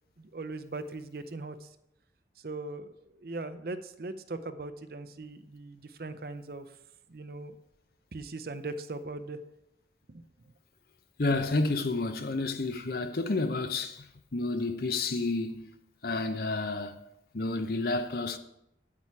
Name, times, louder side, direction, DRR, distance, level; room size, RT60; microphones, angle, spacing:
voice 1, 0.2-1.7 2.4-6.7 7.1-7.6 8.1-9.4 10.1-10.2, right 2 dB, 55° right, 0.6 m, -39 dB
voice 2, 11.2-14.1 14.3-15.7 16.0-17.0 17.3-18.4, left 3 dB, 55° left, 0.7 m, -30 dB
8.7 x 8.5 x 4.7 m
head